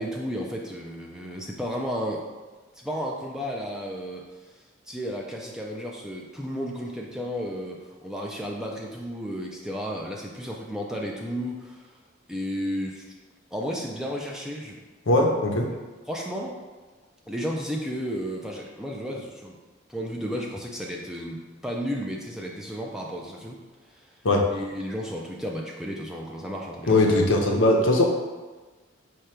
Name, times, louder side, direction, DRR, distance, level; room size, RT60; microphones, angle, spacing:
voice 1, 0.0-2.3 2.8-4.2 4.9-11.9 12.3-13.1 13.5-14.8 16.1-16.6 17.3-19.6 19.9-23.6 23.9-24.0 24.5-27.2, equal, 5° right, -2 dB, 0.3 m, -33 dB
voice 2, 15.1-15.7 24.2-24.5 26.9-28.0, left 2 dB, 70° left, 1 dB, 0.6 m, -20 dB
4.9 x 2.2 x 4.3 m, 1.3 s
head